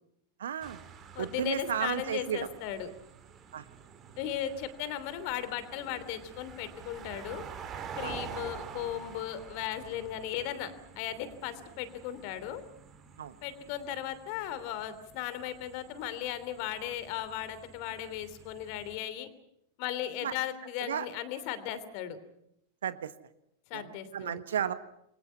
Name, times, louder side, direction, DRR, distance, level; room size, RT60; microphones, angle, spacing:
voice 1, 0.4-0.8 1.2-2.5 3.5-3.6 8.0-8.1 13.2-13.3 20.2-20.3 20.9-21.1 22.8-23.1 23.7-24.7, right 9 dB, 65° right, 14 dB, 1.4 m, -33 dB
sound 1, 0.6-19.0, right 7 dB, 30° right, 3.6 m, -48 dB
voice 2, 1.1-2.9 4.2-7.4 8.0-12.6 13.4-19.3 19.8-22.2 23.7-24.4, left 11 dB, 45° left, 13 dB, 3.1 m, -36 dB
28.5 x 23.5 x 5.7 m, 0.77 s
figure-of-eight pair, 90°, 0 cm